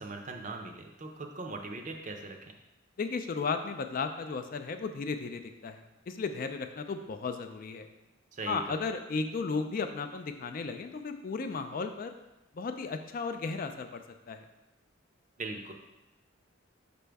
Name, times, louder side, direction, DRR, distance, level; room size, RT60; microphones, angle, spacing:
voice 1, 0.0-2.4 8.3-8.8 15.4-15.7, right 3 dB, 40° right, 3 dB, 0.6 m, -40 dB
voice 2, 3.0-7.9 8.5-12.1 12.5-14.4, left 4 dB, 45° left, 7 dB, 0.4 m, -35 dB
5.4 x 5.1 x 3.4 m, 1.0 s
head